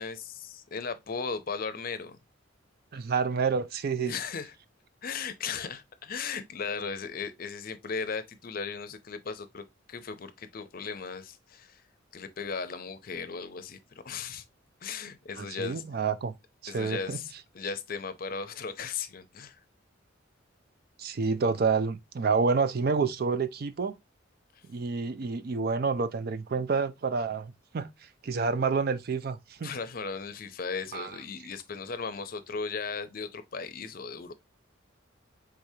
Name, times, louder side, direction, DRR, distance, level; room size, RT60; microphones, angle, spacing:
voice 1, 0.0-2.2 4.1-4.5 5.0-11.8 12.1-13.8 14.0-14.4 14.8-15.8 16.7-19.6 29.6-34.3, left 5 dB, 45° left, 0.6 m, -36 dB
voice 2, 2.9-4.1 15.4-16.3 16.6-17.2 21.0-23.9 24.7-27.9 28.2-29.7 30.9-31.1, right 5 dB, 50° right, 0.4 m, -28 dB
4.8 x 3.8 x 2.7 m
head